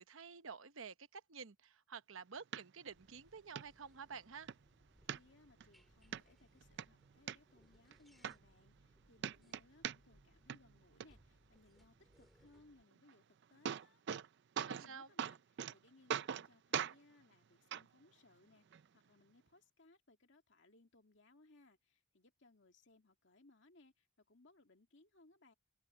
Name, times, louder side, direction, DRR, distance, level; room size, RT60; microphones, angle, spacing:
voice 1, 0.0-4.5 14.7-15.1, right 5 dB, 70° right, 1.0 m, -51 dB
sound 1, 2.5-2.6 3.1-3.2 3.6-3.7 4.1-4.6 5.1-5.7 6.1-6.2 6.6-7.4 7.9-8.0 8.2-8.9 9.2-10.2 10.5-11.1 13.1-13.2 13.4-14.3 14.6-14.9 15.2-15.7 16.1-16.5 16.7-17.0 17.7-17.8 18.7-18.8, right 8 dB, 55° right, 0.4 m, -41 dB
sound 2, 2.9-12.8, equal, ahead, 3.4 m, -70 dB
voice 2, 5.0-13.2 13.5-14.0 14.6-25.5, left 2 dB, 60° left, 2.3 m, -67 dB
open air
head